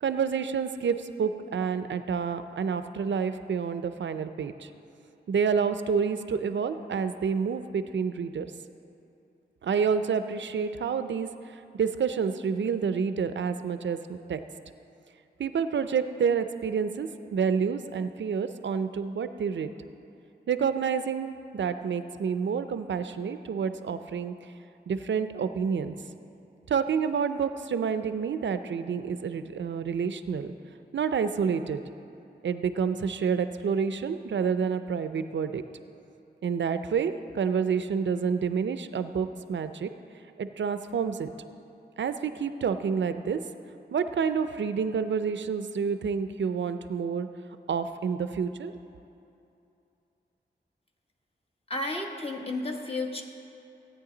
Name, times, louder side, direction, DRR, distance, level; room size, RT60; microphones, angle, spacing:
voice 1, 0.0-4.7 5.3-8.5 9.6-11.3 11.7-14.4 15.4-19.7 20.5-24.3 24.9-25.9 26.7-30.5 30.9-31.8 32.4-35.6 36.4-39.9 40.4-41.3 42.0-43.4 43.9-47.3 47.7-48.7, right 6 dB, 80° right, 10 dB, 0.5 m, -28 dB
voice 2, 51.7-53.2, left 2 dB, 30° left, 1 dB, 1.2 m, -32 dB
16.5 x 9.2 x 3.9 m, 2.8 s
wide cardioid pair, 95°, 19 cm